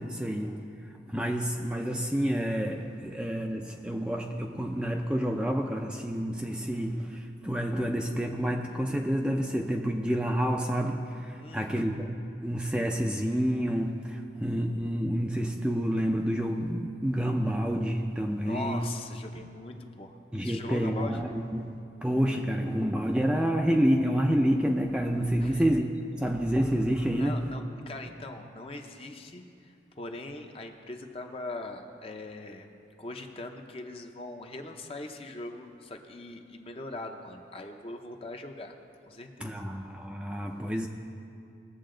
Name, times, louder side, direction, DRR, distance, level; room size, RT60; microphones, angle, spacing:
voice 1, 0.0-18.9 20.3-21.7 22.0-25.9 26.2-27.5 39.4-40.9, equal, 5° right, 1 dB, 0.5 m, -29 dB
voice 2, 11.4-11.9 18.4-20.1 20.4-21.2 25.4-25.6 27.1-32.7 33.0-38.8 39.1-39.6, left 2 dB, 30° left, 4 dB, 0.8 m, -41 dB
20.5 x 7.5 x 3.8 m, 2.5 s
head